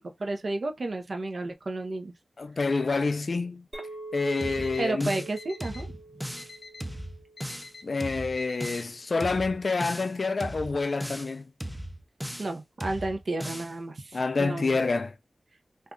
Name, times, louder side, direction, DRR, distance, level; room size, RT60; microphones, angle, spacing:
voice 1, 0.2-2.1 4.8-6.0 12.4-14.8, right 2 dB, 60° right, 0.7 m, -32 dB
voice 2, 2.4-3.7 4.1-5.2 7.8-11.4 14.1-15.1, left 3 dB, 60° left, 0.3 m, -28 dB
Chink clink, 3.7-8.2, right 3 dB, 35° right, 1.2 m, -45 dB
Alarm, 4.4-4.8 5.4-5.8 6.4-6.8 7.4-7.8 8.4-8.8, left 4 dB, 80° left, 0.7 m, -45 dB
sound 1, 4.4-5.3 5.6-6.5 6.8-7.7 8.0-8.9 9.2-10.1 10.4-11.3 11.6-12.5 12.8-13.7, equal, ahead, 0.5 m, -37 dB
2.6 x 2.3 x 3.6 m
wide cardioid pair, 100°, 0 cm